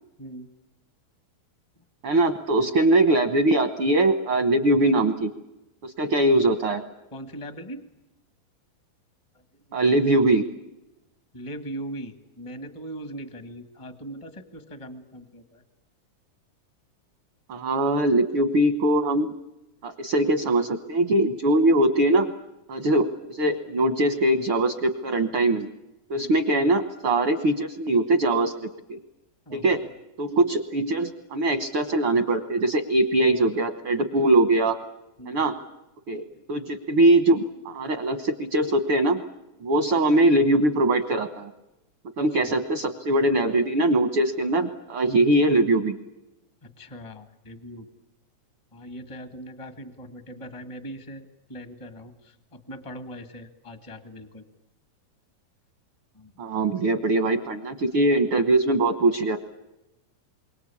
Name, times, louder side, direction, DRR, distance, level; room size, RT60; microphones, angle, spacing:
voice 1, 2.0-5.3 5.8-6.8 9.7-10.5 17.5-19.3 19.8-22.3 22.7-25.7 26.1-29.0 29.5-29.8 30.2-34.8 35.3-35.6 36.1-36.2 36.5-39.2 39.6-41.5 42.2-46.0 56.4-59.4, right 1 dB, 70° right, 8 dB, 1.2 m, -22 dB
voice 2, 7.1-7.8 11.3-12.1 12.4-15.4 29.5-29.6 35.2-35.4 45.1-45.2 46.8-47.8 48.7-51.2 51.5-52.1 52.7-54.4, right 1 dB, 35° left, 9 dB, 0.5 m, -39 dB
28.5 x 24.0 x 8.6 m, 0.94 s
omnidirectional pair, 4.2 m